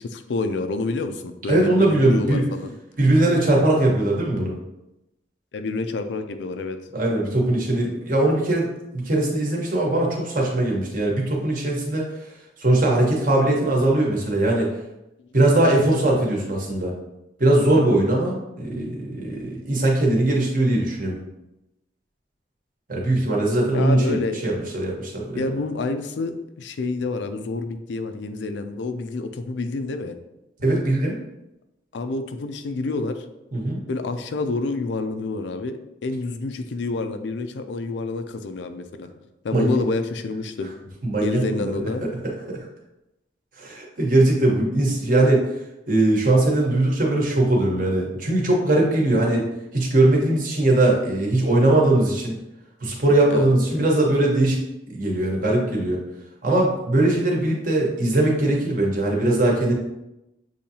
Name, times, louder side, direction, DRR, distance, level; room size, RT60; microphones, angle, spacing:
voice 1, 0.0-2.8 5.5-6.8 23.7-24.4 25.3-30.2 31.9-33.2 33.9-39.1 39.4-40.7 41.2-42.0 53.3-53.9, left 3 dB, 75° left, 8 dB, 0.4 m, -28 dB
voice 2, 1.5-2.5 3.0-4.5 6.9-8.7 8.9-12.0 12.6-14.7 15.3-16.9 17.4-21.2 22.9-25.4 30.6-31.2 33.5-33.8 39.5-39.8 41.0-42.6 43.6-45.4 45.9-49.4 49.7-52.3 52.8-54.6 54.9-56.0 56.4-59.7, right 2 dB, 50° right, -2 dB, 1.1 m, -20 dB
6.9 x 2.7 x 2.8 m, 0.93 s
head